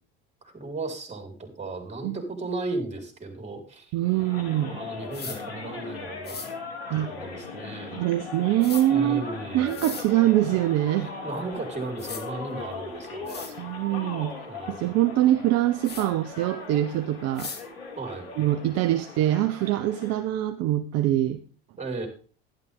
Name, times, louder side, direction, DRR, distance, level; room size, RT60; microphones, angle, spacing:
voice 1, 0.4-3.9 4.5-6.4 6.9-8.0 8.9-9.9 11.2-13.5 14.5-14.8 18.0-18.3 21.8-22.1, right 2 dB, 20° right, 5 dB, 4.8 m, -35 dB
voice 2, 3.9-4.8 6.9-7.1 7.9-9.3 9.5-11.1 13.5-14.3 14.7-17.5 18.4-21.4, right 13 dB, 55° right, 9 dB, 1.0 m, -24 dB
sound 1, 4.0-20.3, left 4 dB, 90° left, 2.8 m, -39 dB
sound 2, 5.1-5.4 6.2-6.5 8.6-8.8 9.7-10.1 11.5-11.6 12.0-12.2 12.9-13.0 13.3-13.5 15.8-16.1 17.4-17.6, left 4 dB, 35° left, 2.9 m, -37 dB
12.0 x 11.5 x 3.7 m, 0.39 s
hypercardioid pair, 85°, 30 cm